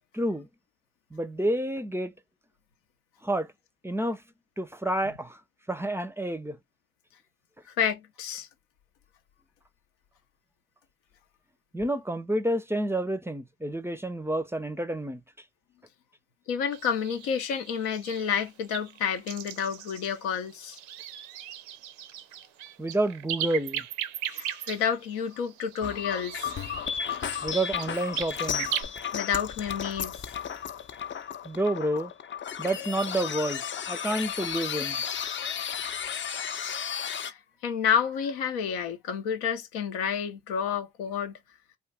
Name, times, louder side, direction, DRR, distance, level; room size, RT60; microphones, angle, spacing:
voice 1, 0.1-0.5 1.1-2.1 3.2-3.5 3.8-4.2 4.6-5.4 5.7-6.6 11.7-15.2 22.8-23.8 27.4-28.7 31.4-32.1 32.6-33.6 33.9-35.0, right 1 dB, 10° right, 0.5 m, -29 dB
voice 2, 7.8-8.5 16.5-20.8 24.3-26.5 29.1-30.3 37.1-41.3, left 7 dB, 85° left, 0.7 m, -30 dB
sound 1, 16.7-28.8, right 11 dB, 80° right, 0.5 m, -38 dB
sound 2, 25.8-37.3, left 8 dB, 40° left, 0.6 m, -34 dB
2.7 x 2.4 x 3.3 m
hypercardioid pair, 50°, 29 cm